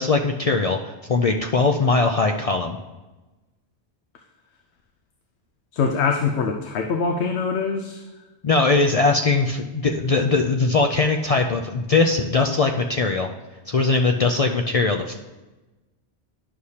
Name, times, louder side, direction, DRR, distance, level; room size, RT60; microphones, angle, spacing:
voice 1, 0.0-2.8 8.4-13.3 13.7-15.2, left 3 dB, 55° left, 4 dB, 0.4 m, -20 dB
voice 2, 5.7-8.0, left 5 dB, 75° left, 4 dB, 0.9 m, -23 dB
11.5 x 6.5 x 2.8 m, 1.1 s
omnidirectional pair, 1.1 m